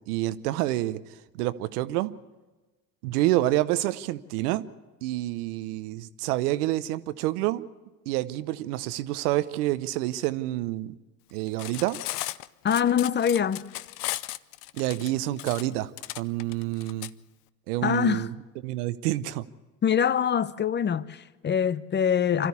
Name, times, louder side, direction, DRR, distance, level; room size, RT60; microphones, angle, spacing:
voice 1, 0.1-1.0 1.4-2.1 3.0-4.6 5.0-7.6 8.1-10.9 11.3-12.0 14.8-15.9 16.2-17.1 17.7-18.3 18.6-19.4, right 16 dB, 80° right, 0.9 m, -28 dB
Cutlery silverware, 11.5-17.1, left 18 dB, 75° left, 0.7 m, -36 dB
voice 2, 12.6-13.7 17.8-18.3 19.8-22.5, left 8 dB, 25° left, 0.7 m, -24 dB
25.0 x 13.5 x 8.4 m
hypercardioid pair, 80°, 45 cm